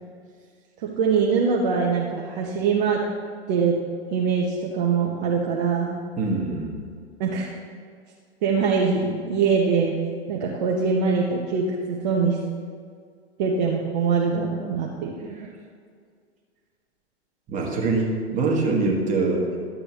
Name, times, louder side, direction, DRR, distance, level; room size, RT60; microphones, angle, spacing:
voice 1, 0.8-3.0 3.5-3.7 4.1-6.0 7.2-7.5 8.4-9.9 10.3-12.4 13.4-15.3, right 5 dB, 40° right, -3 dB, 1.0 m, -23 dB
voice 2, 6.2-6.9 17.5-19.4, right 3 dB, 20° right, -1 dB, 1.6 m, -24 dB
12.0 x 8.0 x 3.0 m, 2.1 s
figure-of-eight pair, 100°, 33 cm